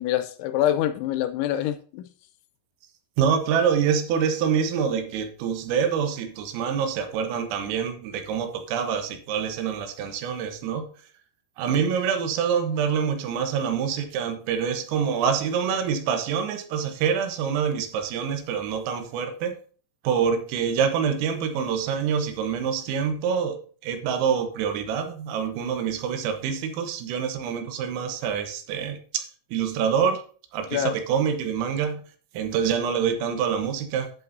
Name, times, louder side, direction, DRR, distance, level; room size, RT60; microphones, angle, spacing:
voice 1, 0.0-2.1 30.7-30.9, left 11 dB, 85° left, 2.7 m, -25 dB
voice 2, 3.2-10.9 11.6-19.6 20.1-30.2 30.5-32.0 32.4-34.1, right 7 dB, 90° right, 3.8 m, -26 dB
10.5 x 8.7 x 2.7 m
omnidirectional pair, 5.8 m